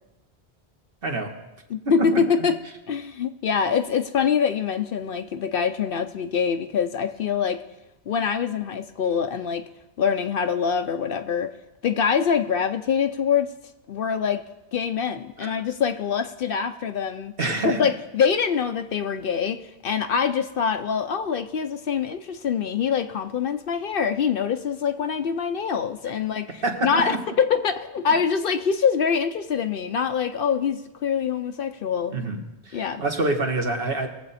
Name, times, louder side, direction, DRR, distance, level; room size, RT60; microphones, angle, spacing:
voice 1, 1.0-1.3 1.8-2.3 15.4-15.5 17.4-17.9 26.6-27.2 32.1-34.1, right 2 dB, 55° right, 3 dB, 1.5 m, -27 dB
voice 2, 1.7-2.6 2.9-7.6 8.1-9.6 10.0-11.5 11.8-13.5 13.9-14.4 14.7-17.3 17.6-32.1 32.7-33.0, left 7 dB, 60° left, 9 dB, 0.7 m, -24 dB
21.0 x 7.8 x 4.1 m, 1.0 s
omnidirectional pair, 1.1 m